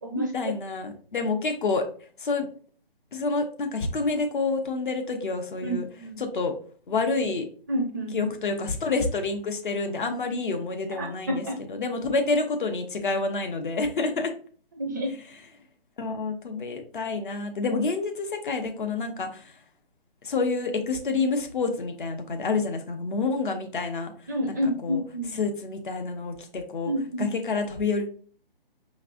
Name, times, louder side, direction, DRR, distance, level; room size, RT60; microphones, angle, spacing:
voice 1, 0.1-1.9 2.2-2.5 3.1-5.8 6.2-6.5 6.9-7.4 8.1-14.3 16.0-19.5 20.2-24.1 24.5-24.6 24.8-25.0 25.3-26.9 27.2-28.1, left 3 dB, 55° left, 5 dB, 1.0 m, -28 dB
voice 2, 5.6-6.2 7.7-8.3 11.0-11.5 14.8-15.1 24.3-25.4 26.8-27.2, equal, 20° right, 3 dB, 0.4 m, -29 dB
5.1 x 3.2 x 2.5 m, 0.43 s
figure-of-eight pair, 140°, 30 cm